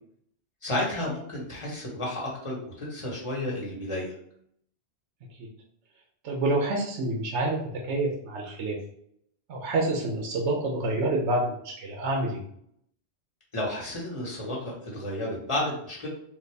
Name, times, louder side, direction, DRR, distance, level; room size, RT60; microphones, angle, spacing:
voice 1, 0.6-4.1 13.5-16.1, left 1 dB, 25° left, -4 dB, 1.3 m, -32 dB
voice 2, 6.2-7.6 7.8-8.8 9.5-12.4, right 2 dB, 90° right, 0 dB, 1.0 m, -27 dB
4.0 x 2.6 x 3.3 m, 0.68 s
omnidirectional pair, 1.2 m